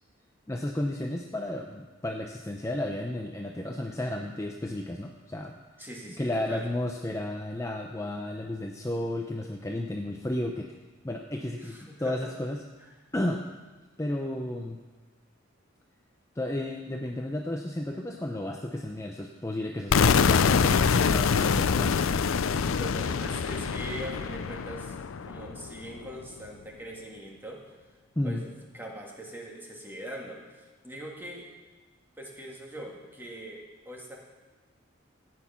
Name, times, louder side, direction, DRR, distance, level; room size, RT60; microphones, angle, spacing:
voice 1, 0.5-5.5 6.2-10.7 11.0-12.6 13.1-13.4 14.0-14.8 16.4-22.0 28.2-28.4, left 1 dB, 15° left, 1 dB, 0.6 m, -33 dB
voice 2, 5.8-6.6 11.6-12.3 12.8-12.9 22.8-25.0 25.2-27.6 28.2-31.5 32.2-34.2, right 1 dB, 10° right, -1 dB, 2.1 m, -42 dB
sound 1, 19.9-25.8, left 6 dB, 80° left, 0.5 m, -25 dB
14.0 x 9.4 x 5.9 m, 1.3 s
head